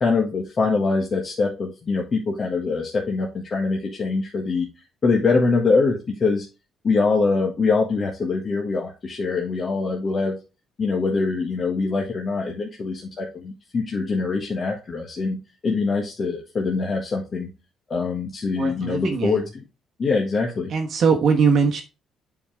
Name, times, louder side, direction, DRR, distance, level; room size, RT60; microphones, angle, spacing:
voice 1, 0.0-4.7 5.0-6.5 6.8-10.4 10.8-17.5 17.9-19.6 20.0-20.7, left 4 dB, 35° left, -1 dB, 1.5 m, -23 dB
voice 2, 18.6-19.4 20.7-21.8, right 5 dB, 50° right, 1 dB, 1.2 m, -20 dB
8.5 x 5.0 x 3.5 m, 0.29 s
cardioid pair, 140°, 0 cm